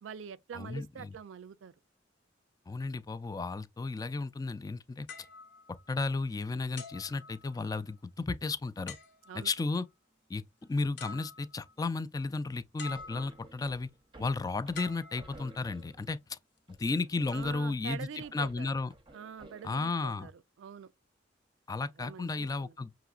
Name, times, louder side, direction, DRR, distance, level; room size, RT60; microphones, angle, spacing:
voice 1, 0.0-1.7 9.3-9.5 17.3-18.7 19.1-20.3 20.6-20.9 22.0-22.8, right 7 dB, 85° right, 0.4 m, -45 dB
voice 2, 0.5-1.1 2.7-5.1 5.9-9.0 9.3-9.8 10.3-10.4 10.7-13.9 14.2-16.4 16.7-18.9 19.6-20.3 21.7-22.9, left 3 dB, 20° left, 0.3 m, -34 dB
sound 1, 5.1-6.3 6.8-7.9 8.9-9.6 10.6-10.7 11.0-11.8 12.8-13.6 14.7-15.9 16.6-16.8, left 4 dB, 65° left, 1.0 m, -47 dB
sound 2, 12.9-16.2 16.7-19.9, right 2 dB, 25° right, 0.7 m, -55 dB
5.8 x 2.9 x 2.3 m
head